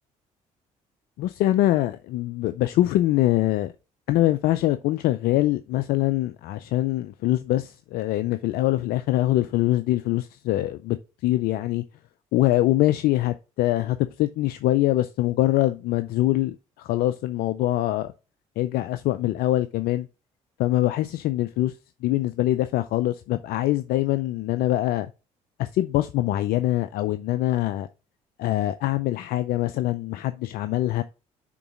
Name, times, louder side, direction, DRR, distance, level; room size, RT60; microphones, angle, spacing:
voice 1, 1.2-3.7 4.1-11.0 11.2-11.8 12.3-18.1 18.6-20.1 20.6-21.7 22.0-25.1 25.6-27.9 28.4-31.0, left 15 dB, 70° left, 0.5 m, -23 dB
6.1 x 3.9 x 6.0 m
supercardioid pair, 65°, 16 cm